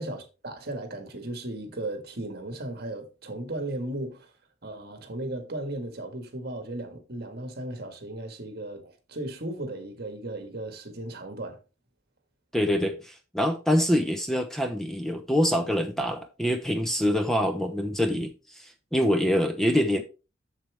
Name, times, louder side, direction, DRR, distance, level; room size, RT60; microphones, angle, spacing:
voice 1, 0.0-4.3 4.6-11.6, right 1 dB, 55° right, 1.7 m, -36 dB
voice 2, 12.5-18.3 18.6-20.0, equal, ahead, 0.8 m, -25 dB
7.4 x 7.0 x 3.5 m
head